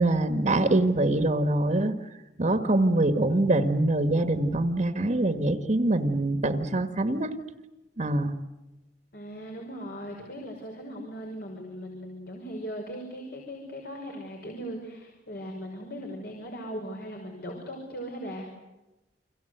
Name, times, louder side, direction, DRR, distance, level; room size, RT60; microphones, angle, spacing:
voice 1, 0.0-1.9 2.4-7.3 8.0-8.3, right 2 dB, 40° right, 9 dB, 1.6 m, -24 dB
voice 2, 9.1-18.5, equal, 60° left, 2 dB, 5.6 m, -38 dB
30.0 x 24.0 x 8.1 m, 1.0 s
head